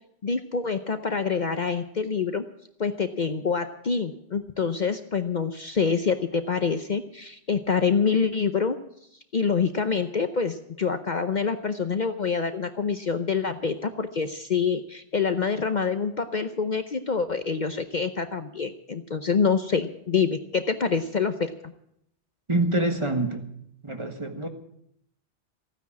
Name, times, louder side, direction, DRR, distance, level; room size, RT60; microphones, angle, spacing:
voice 1, 0.2-2.4 2.8-8.8 9.3-21.7, left 5 dB, 45° left, 9 dB, 0.8 m, -26 dB
voice 2, 22.5-23.5 23.8-24.5, right 2 dB, 25° right, 5 dB, 1.6 m, -26 dB
15.5 x 9.6 x 8.5 m, 0.73 s
omnidirectional pair, 1.1 m